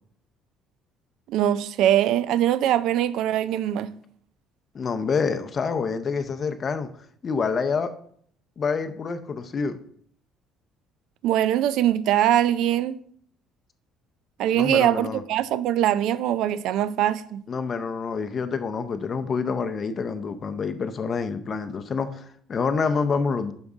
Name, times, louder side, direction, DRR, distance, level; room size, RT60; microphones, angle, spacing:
voice 1, 1.3-3.9 11.2-13.0 14.4-17.4, right 11 dB, 60° right, 0.4 m, -22 dB
voice 2, 4.7-6.9 7.2-7.9 8.6-9.8 14.5-15.2 17.5-23.5, left 5 dB, 25° left, 0.6 m, -27 dB
10.5 x 5.3 x 3.6 m
cardioid pair, 175°, 0 cm